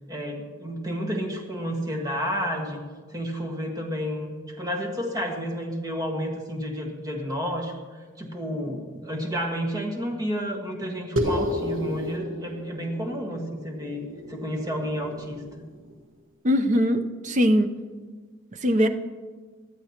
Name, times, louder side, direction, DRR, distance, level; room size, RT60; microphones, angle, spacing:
voice 1, 0.1-2.8 3.1-7.7 8.2-15.4, equal, 20° right, 1 dB, 1.5 m, -31 dB
sound 1, 11.2-15.9, left 1 dB, 80° right, 1.4 m, -32 dB
voice 2, 16.4-17.7 18.6-18.9, equal, 40° right, 8 dB, 0.7 m, -21 dB
19.0 x 12.5 x 2.9 m, 1.5 s
head